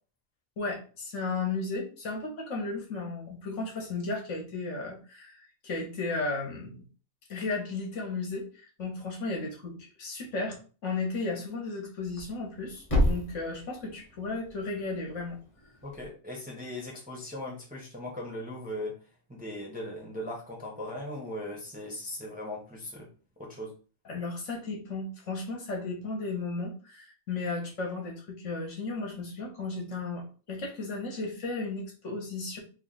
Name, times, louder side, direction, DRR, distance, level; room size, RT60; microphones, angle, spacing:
voice 1, 0.6-5.4 5.6-6.8 7.3-8.5 8.8-15.4 24.1-32.6, left 3 dB, 65° left, 0 dB, 1.3 m, -34 dB
Thump thud, 12.0-16.1, left 1 dB, 30° left, 0.8 m, -32 dB
voice 2, 15.8-18.9 19.3-23.1 23.4-23.7, left 1 dB, 10° right, -2 dB, 0.8 m, -38 dB
3.2 x 2.4 x 3.9 m, 0.37 s
omnidirectional pair, 1.4 m